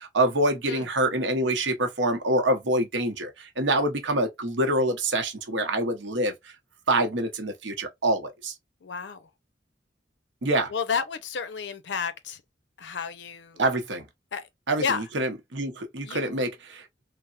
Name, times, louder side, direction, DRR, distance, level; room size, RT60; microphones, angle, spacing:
voice 1, 0.0-6.3 6.9-8.5 10.4-10.7 13.6-14.1 14.7-16.8, right 1 dB, 85° right, 0.8 m, -26 dB
voice 2, 8.8-9.2 10.7-12.4 12.8-13.6 14.3-14.4 14.8-15.0 16.0-16.4, left 6 dB, 75° left, 0.5 m, -31 dB
3.4 x 2.0 x 2.3 m
head